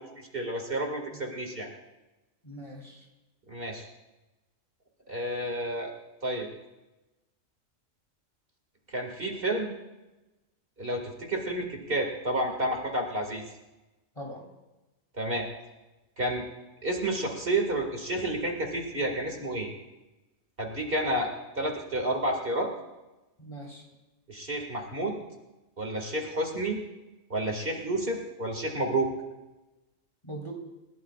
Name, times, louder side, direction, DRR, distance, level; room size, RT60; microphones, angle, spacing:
voice 1, 0.0-1.7 3.5-3.9 5.1-5.9 6.2-6.5 8.9-9.7 10.8-13.4 15.2-15.5 16.2-16.4 16.8-19.7 20.6-21.3 21.6-22.7 24.3-25.2 25.8-26.8 27.3-29.1, right 1 dB, 45° right, 2 dB, 2.4 m, -30 dB
voice 2, 2.4-3.1 14.1-14.5 23.4-23.9 30.2-30.5, right 1 dB, 25° left, 0 dB, 3.1 m, -41 dB
29.5 x 17.0 x 2.4 m, 1.1 s
omnidirectional pair, 1.3 m